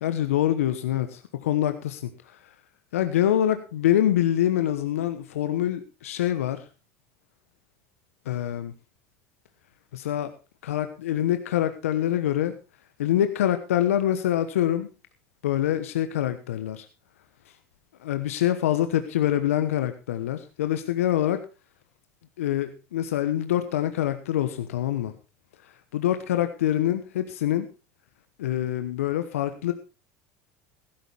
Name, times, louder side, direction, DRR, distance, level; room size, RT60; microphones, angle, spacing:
voice 1, 0.0-2.0 2.9-6.6 8.3-8.7 9.9-10.3 10.6-12.5 13.0-14.9 15.4-16.8 18.0-21.4 22.4-25.1 25.9-27.7 28.4-29.7, left 11 dB, 85° left, 9 dB, 1.1 m, -25 dB
15.5 x 13.5 x 3.4 m, 0.30 s
hypercardioid pair, 80°, 7 cm